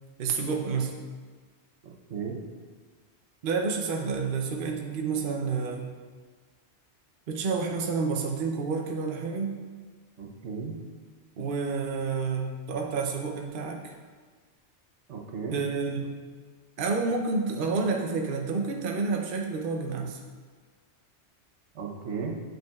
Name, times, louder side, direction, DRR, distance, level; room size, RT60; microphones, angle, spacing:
voice 1, 0.2-0.9 3.4-5.9 7.3-9.5 11.4-13.9 15.5-16.0 16.8-20.2, right 4 dB, 55° right, 1 dB, 0.8 m, -29 dB
voice 2, 1.8-2.4 10.2-10.8 15.1-15.6 21.7-22.4, right 5 dB, 75° right, 0 dB, 1.1 m, -35 dB
9.0 x 5.1 x 2.3 m, 1.5 s
omnidirectional pair, 1.2 m